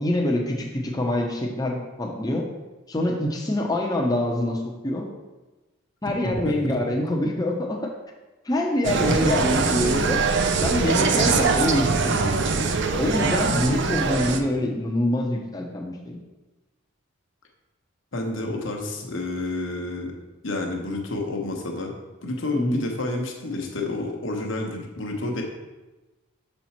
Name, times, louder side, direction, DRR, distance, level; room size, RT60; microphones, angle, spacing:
voice 1, 0.0-2.5 2.9-5.1 6.0-7.9 8.4-10.2 10.6-12.7 13.0-16.2 22.5-22.8, left 1 dB, 15° left, 0 dB, 0.8 m, -25 dB
voice 2, 6.2-6.7 18.1-20.1 20.4-21.9 22.2-25.4, left 2 dB, 60° left, 2 dB, 1.0 m, -29 dB
Insect, 8.8-14.4, right 4 dB, 55° right, 0.5 m, -22 dB
6.9 x 4.4 x 4.3 m, 1.1 s
head